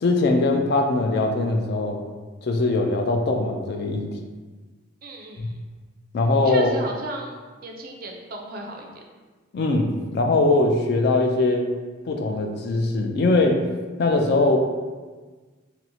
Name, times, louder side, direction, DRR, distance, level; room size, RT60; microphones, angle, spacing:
voice 1, 0.0-2.0 2.4-4.1 5.4-5.5 6.1-6.7 9.5-11.7 12.1-13.6 14.0-14.6, left 2 dB, 50° left, 3 dB, 0.3 m, -21 dB
voice 2, 5.0-5.6 6.4-9.0, right 2 dB, 45° right, 1 dB, 0.4 m, -35 dB
4.3 x 2.0 x 2.6 m, 1.4 s
head